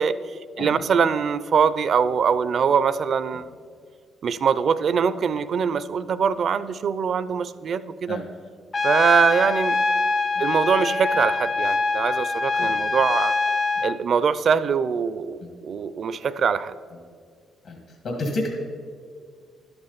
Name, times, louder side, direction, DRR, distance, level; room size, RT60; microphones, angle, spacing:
voice 1, 0.0-3.4 4.2-8.2 8.8-9.8 10.4-13.3 13.8-16.7, right 6 dB, 55° right, 15 dB, 0.4 m, -23 dB
Trumpet, 8.7-14.0, left 3 dB, 30° left, 0.4 m, -24 dB
voice 2, 18.0-18.5, left 2 dB, 70° left, 1 dB, 1.8 m, -29 dB
12.0 x 7.9 x 4.1 m, 2.1 s
cardioid pair, 90°, 0 cm